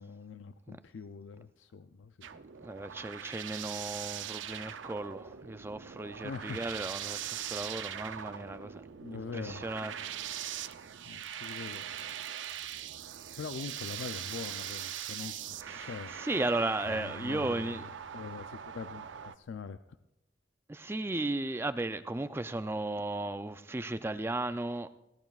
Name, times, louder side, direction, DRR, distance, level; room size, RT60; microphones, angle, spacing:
voice 1, 0.0-2.3 6.2-6.6 9.0-10.3 11.1-11.9 12.6-12.7 13.4-16.1 16.8-19.8, left 5 dB, 90° left, 0.4 m, -43 dB
sound 1, 2.2-19.4, right 10 dB, 90° right, 0.5 m, -41 dB
voice 2, 2.6-10.1 11.0-11.4 15.7-15.9 16.2-17.8 20.7-25.0, right 2 dB, 15° right, 0.3 m, -35 dB
21.0 x 16.5 x 2.4 m
head